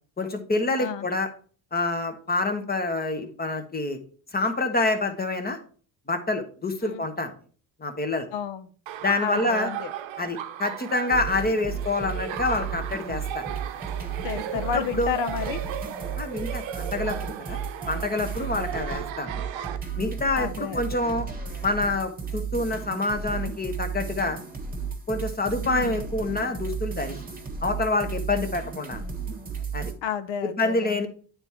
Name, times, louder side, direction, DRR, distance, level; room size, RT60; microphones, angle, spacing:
voice 1, 0.2-1.3 1.7-4.0 4.3-5.6 6.1-7.3 7.8-8.3 9.0-9.7 10.2-13.5 14.5-15.2 16.2-17.6 17.9-19.4 20.0-21.3 21.6-24.4 25.1-27.2 27.6-29.0 29.7-29.9 30.4-31.1, left 2 dB, 20° left, 7 dB, 1.1 m, -27 dB
voice 2, 8.3-8.7 9.2-9.9 14.2-15.7 20.3-21.2 25.6-26.0 30.0-31.1, left 8 dB, 70° left, 11 dB, 0.9 m, -32 dB
Laughter, 8.9-19.8, right 10 dB, 75° right, 0.7 m, -36 dB
sound 1, 11.1-29.9, right 6 dB, 20° right, 1.3 m, -34 dB
8.9 x 3.6 x 4.3 m, 0.42 s
cardioid pair, 95°, 46 cm